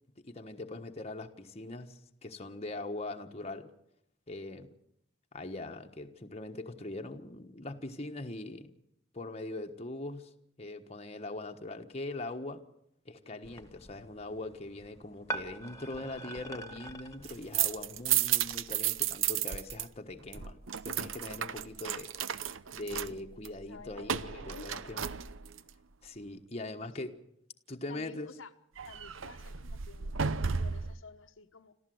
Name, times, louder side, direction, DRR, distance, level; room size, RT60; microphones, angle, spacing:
voice 1, 0.3-3.7 4.3-4.7 5.3-8.7 9.1-10.3 10.6-12.6 13.0-22.1 22.7-25.1 26.0-27.1 27.7-28.3, left 2 dB, 30° left, 4 dB, 1.3 m, -41 dB
sound 1, 13.4-18.6, right 2 dB, 15° left, 1.8 m, -44 dB
sound 2, 17.1-19.9 20.1-25.7 28.8-31.0, right 9 dB, 70° right, 0.8 m, -33 dB
voice 2, 23.7-25.0 27.0-27.1 27.9-28.5 28.8-31.7, left 4 dB, 70° left, 6 dB, 1.2 m, -52 dB
26.0 x 14.5 x 7.8 m, 0.77 s
head